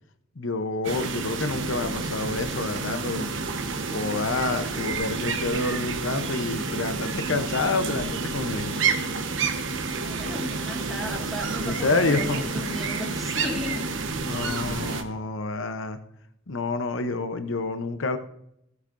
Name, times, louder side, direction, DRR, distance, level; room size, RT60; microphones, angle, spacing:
voice 1, 0.4-3.3 3.9-8.8 11.6-12.6 14.2-16.0 16.5-18.2, left 3 dB, 75° left, 9 dB, 0.8 m, -28 dB
sound 1, 0.8-15.0, right 4 dB, 70° right, 1.1 m, -29 dB
voice 2, 9.9-13.9, left 1 dB, ahead, -1 dB, 1.9 m, -35 dB
15.5 x 8.1 x 2.6 m, 0.76 s
head